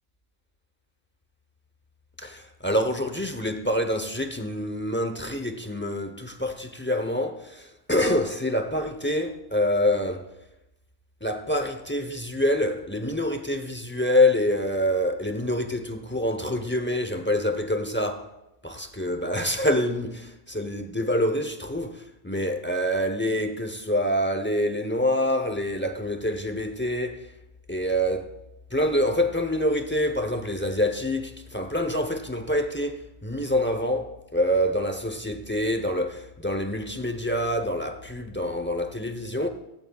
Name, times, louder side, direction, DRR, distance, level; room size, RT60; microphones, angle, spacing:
voice 1, 2.2-10.3 11.2-18.3 18.6-27.3 27.7-28.3 28.7-39.5, left 1 dB, 10° left, 0.6 m, -26 dB
18.5 x 12.5 x 2.3 m
omnidirectional pair, 1.2 m